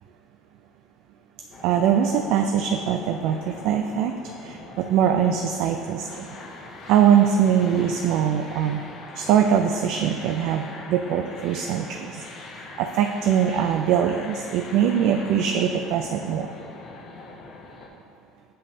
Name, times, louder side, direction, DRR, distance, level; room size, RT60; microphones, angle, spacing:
sound 1, 1.5-17.9, left 3 dB, 45° left, 0.8 m, -42 dB
voice 1, 1.6-4.1 4.4-6.3 6.9-8.9 9.1-16.6, right 8 dB, 70° right, 5 dB, 0.3 m, -22 dB
7.6 x 5.2 x 2.8 m, 2.4 s
supercardioid pair, 90°, 0 cm